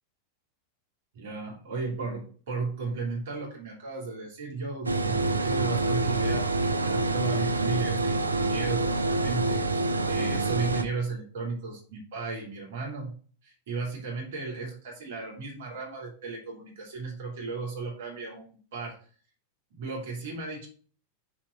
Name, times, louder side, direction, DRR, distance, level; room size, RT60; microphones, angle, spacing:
voice 1, 1.1-9.6 10.0-13.1 13.4-19.0 19.7-20.7, right 4 dB, 55° right, -1 dB, 2.9 m, -35 dB
sound 1, 4.9-10.8, right 2 dB, 80° right, 0.5 m, -26 dB
6.1 x 4.5 x 4.5 m, 0.42 s
figure-of-eight pair, 90°, 0 cm